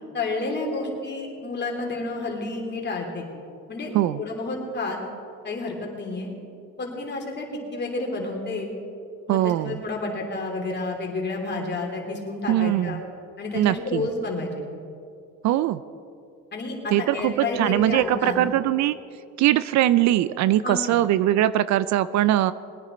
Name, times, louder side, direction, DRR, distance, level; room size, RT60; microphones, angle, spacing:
voice 1, 0.1-3.2 3.7-5.0 5.4-6.3 6.8-8.7 9.3-13.0 13.4-14.5 16.5-18.5 20.6-21.0, left 3 dB, 30° left, 0 dB, 3.0 m, -30 dB
voice 2, 9.3-9.8 12.5-13.0 13.5-14.1 15.4-15.8 16.9-19.0 19.4-22.5, right 13 dB, 60° right, 16 dB, 0.5 m, -21 dB
21.0 x 9.9 x 4.3 m, 2.5 s
cardioid pair, 110°, 32 cm